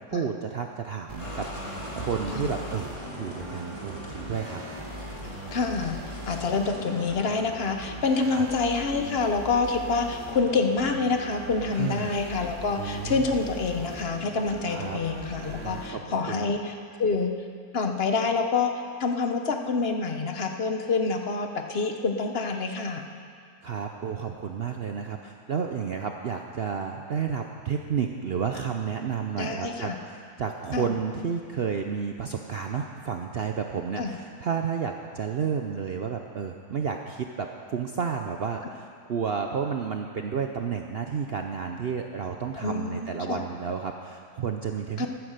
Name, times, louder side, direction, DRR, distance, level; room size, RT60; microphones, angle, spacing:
voice 1, 0.1-2.9 3.2-4.6 8.2-8.4 11.8-12.1 12.8-13.3 14.7-15.0 15.6-16.5 23.6-45.1, right 6 dB, 65° right, 4 dB, 0.6 m, -31 dB
sound 1, 1.1-15.9, right 1 dB, 20° right, 1.2 m, -40 dB
sound 2, 1.2-7.1, left 1 dB, 20° left, 1.6 m, -41 dB
voice 2, 5.5-6.0 6.3-16.7 17.0-17.3 17.7-18.7 19.0-23.0 29.4-30.0 30.7-30.9 34.0-34.1 42.6-43.4 45.0-45.1, left 4 dB, 45° left, 5 dB, 0.9 m, -27 dB
14.0 x 9.5 x 6.6 m, 2.2 s
omnidirectional pair, 1.7 m